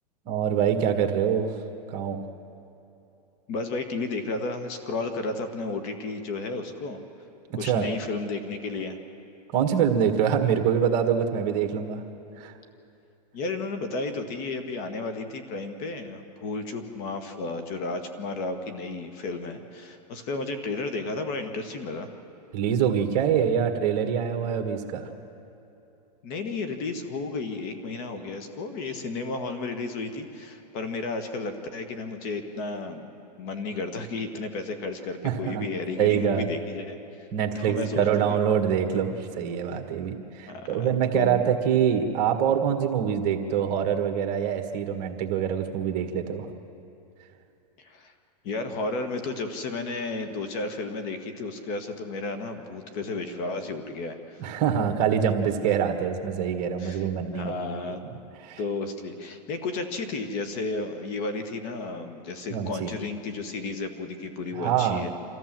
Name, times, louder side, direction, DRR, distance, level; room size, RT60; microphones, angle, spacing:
voice 1, 0.3-1.6 1.9-2.2 7.6-7.9 9.5-12.0 12.4-12.5 22.5-25.1 35.2-35.7 36.0-36.5 37.3-46.5 54.4-57.5 58.4-58.6 62.5-62.9 64.6-65.1, right 8 dB, 40° right, 5 dB, 1.7 m, -25 dB
voice 2, 3.5-7.0 7.5-9.0 13.3-22.1 26.2-37.3 37.6-38.4 40.4-41.4 47.8-48.1 48.4-54.4 56.8-57.1 57.3-58.0 58.6-65.1, left 3 dB, 40° left, 9 dB, 1.7 m, -33 dB
26.0 x 14.5 x 7.7 m, 2.9 s
hypercardioid pair, 145°, 21 cm